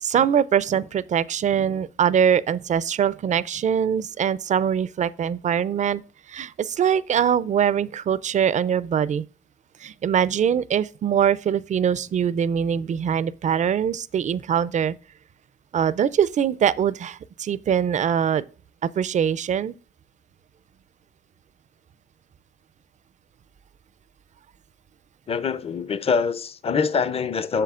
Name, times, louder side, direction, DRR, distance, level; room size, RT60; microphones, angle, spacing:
voice 1, 0.0-6.0 6.3-9.2 9.8-15.0 15.7-18.4 18.8-19.8, right 8 dB, 40° right, 0.4 m, -23 dB
voice 2, 25.3-27.6, left 5 dB, 30° left, 0.5 m, -24 dB
7.6 x 6.5 x 2.4 m
cardioid pair, 90°, 20 cm